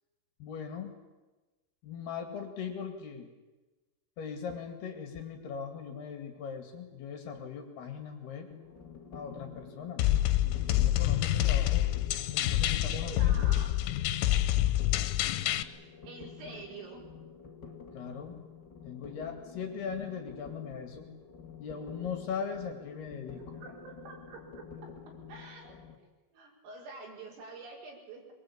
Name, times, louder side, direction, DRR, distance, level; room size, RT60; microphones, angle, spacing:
voice 1, 0.4-0.9 1.8-3.3 4.2-8.5 9.1-10.2 10.4-11.9 12.3-13.5 17.9-18.4 18.8-21.1 21.6-23.4, left 6 dB, 60° left, 6 dB, 3.8 m, -39 dB
sound 1, 8.5-26.0, left 6 dB, 35° left, 1.9 m, -49 dB
sound 2, 10.0-15.6, left 13 dB, 85° left, 3.5 m, -27 dB
voice 2, 12.9-13.7 16.0-17.0 23.6-24.7 25.3-25.7 26.3-28.3, right 3 dB, 90° right, -2 dB, 7.5 m, -46 dB
23.0 x 23.0 x 8.7 m, 1.2 s
omnidirectional pair, 5.6 m